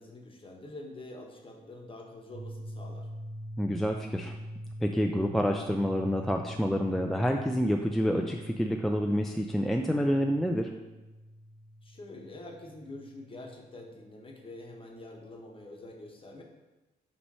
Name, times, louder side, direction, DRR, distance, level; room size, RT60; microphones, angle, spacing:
voice 1, 0.0-3.1 11.8-16.4, left 2 dB, 30° left, 1 dB, 1.1 m, -46 dB
sound 1, 2.3-14.2, equal, 50° right, 0.8 m, -44 dB
voice 2, 3.6-4.3 4.8-10.7, equal, ahead, 2 dB, 0.4 m, -28 dB
5.8 x 3.2 x 5.5 m, 1.1 s
cardioid pair, 90°, 17 cm